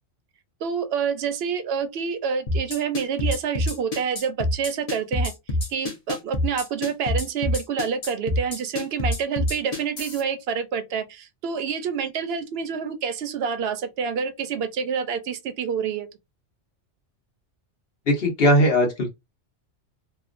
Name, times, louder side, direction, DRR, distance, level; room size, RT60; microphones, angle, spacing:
voice 1, 0.6-5.3 5.7-16.1, right 6 dB, 65° right, 0.7 m, -27 dB
sound 1, 2.5-10.2, left 1 dB, 35° left, 0.8 m, -26 dB
voice 2, 18.1-19.1, equal, 55° left, 1.2 m, -19 dB
2.8 x 2.2 x 2.5 m
omnidirectional pair, 1.2 m